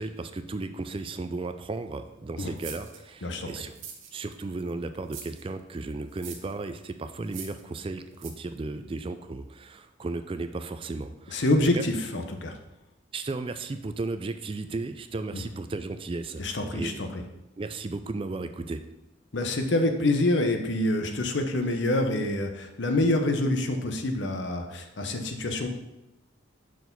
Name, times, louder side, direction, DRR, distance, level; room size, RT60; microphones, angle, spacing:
voice 1, 0.0-3.7 4.1-11.5 11.7-11.8 13.1-16.4 16.7-17.0 17.6-18.8, right 3 dB, 25° right, 9 dB, 0.3 m, -35 dB
sound 1, 2.6-3.0 3.7-4.4 5.1-5.4 6.1-6.5 7.2-7.6 8.2-8.3, right 7 dB, 80° right, 1.1 m, -42 dB
voice 2, 11.3-12.5 16.4-17.2 19.3-25.7, left 1 dB, 65° left, 5 dB, 0.8 m, -26 dB
6.1 x 4.8 x 5.2 m, 0.95 s
head